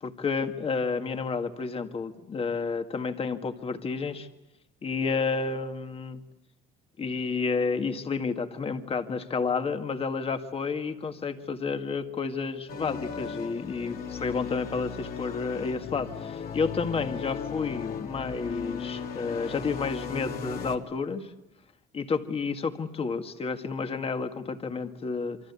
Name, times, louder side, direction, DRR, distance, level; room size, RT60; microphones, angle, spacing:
voice 1, 0.0-4.3 4.8-6.2 7.0-21.3 21.9-25.4, left 4 dB, 35° left, 7 dB, 2.0 m, -30 dB
sound 1, 12.7-20.8, left 6 dB, 60° left, 2.6 m, -36 dB
27.5 x 25.0 x 8.4 m, 0.90 s
cardioid pair, 110°, 17 cm